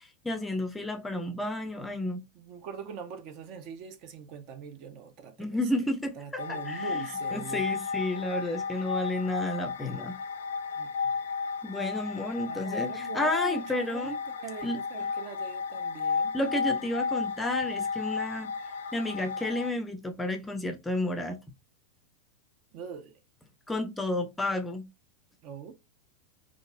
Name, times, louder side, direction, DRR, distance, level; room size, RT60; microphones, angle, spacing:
voice 1, 0.0-2.2 5.4-6.2 6.5-7.0 7.3-10.2 11.6-14.2 14.6-14.8 16.3-18.5 18.9-21.4 23.7-24.9, left 1 dB, 10° left, 0.5 m, -31 dB
voice 2, 2.3-5.6 6.1-7.7 10.8-11.1 12.4-16.4 22.7-23.2 25.4-25.7, right 7 dB, 40° right, 0.5 m, -43 dB
sound 1, 6.4-19.7, left 5 dB, 60° left, 0.4 m, -33 dB
2.9 x 2.5 x 2.4 m
figure-of-eight pair, 90°, 0 cm